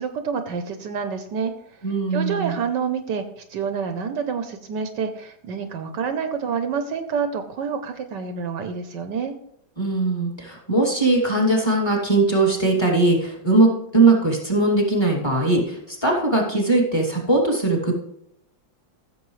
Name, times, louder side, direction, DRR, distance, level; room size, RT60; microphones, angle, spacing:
voice 1, 0.0-1.5 2.1-9.3, right 6 dB, 70° right, 8 dB, 1.4 m, -28 dB
voice 2, 1.8-2.5 9.8-17.9, right 2 dB, 15° left, -1 dB, 2.4 m, -20 dB
15.0 x 7.2 x 3.2 m, 0.74 s
omnidirectional pair, 2.0 m